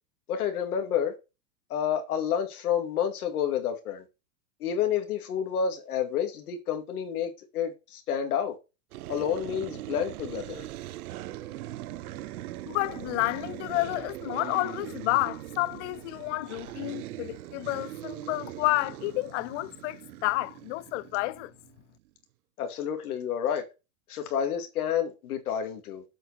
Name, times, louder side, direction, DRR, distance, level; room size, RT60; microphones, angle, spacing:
voice 1, 0.3-1.1 1.7-4.0 4.6-8.6 9.1-10.6 22.6-23.6 24.1-26.0, left 8 dB, 85° left, 2.3 m, -29 dB
sound 1, 8.9-21.8, right 15 dB, 80° right, 0.8 m, -41 dB
voice 2, 12.7-21.5, left 20 dB, 55° left, 0.5 m, -30 dB
7.7 x 4.5 x 5.7 m
supercardioid pair, 135°, 44 cm